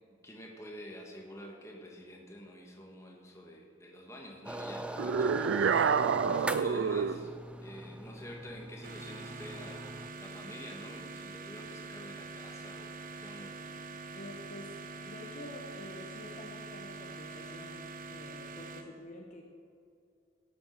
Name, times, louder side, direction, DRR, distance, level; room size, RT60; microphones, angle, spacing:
voice 1, 0.2-5.8 6.3-7.3 7.6-13.5, equal, 15° left, 0 dB, 1.7 m, -48 dB
sound 1, 4.5-10.1, right 1 dB, 5° right, 0.4 m, -41 dB
sound 2, 5.0-7.3, right 6 dB, 70° right, 0.4 m, -28 dB
sound 3, 8.8-18.8, right 3 dB, 45° right, 1.0 m, -45 dB
voice 2, 14.1-14.7 15.0-19.5, left 1 dB, 40° left, 0 dB, 1.2 m, -48 dB
17.0 x 6.9 x 6.7 m, 2.4 s
head